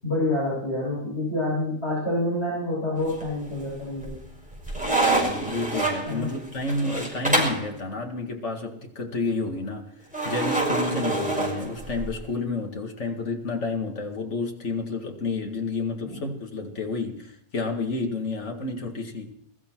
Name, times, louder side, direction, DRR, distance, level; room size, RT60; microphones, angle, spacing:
voice 1, 0.0-4.1 6.1-6.3 16.0-16.2, left 1 dB, 65° left, -7 dB, 8.3 m, -27 dB
sound 1, 3.0-3.6 4.0-7.7 10.1-12.2, right 2 dB, 5° right, 5.8 m, -26 dB
voice 2, 5.2-19.3, left 3 dB, 85° left, 2 dB, 2.4 m, -30 dB
22.5 x 14.0 x 4.6 m, 0.70 s
omnidirectional pair, 1.2 m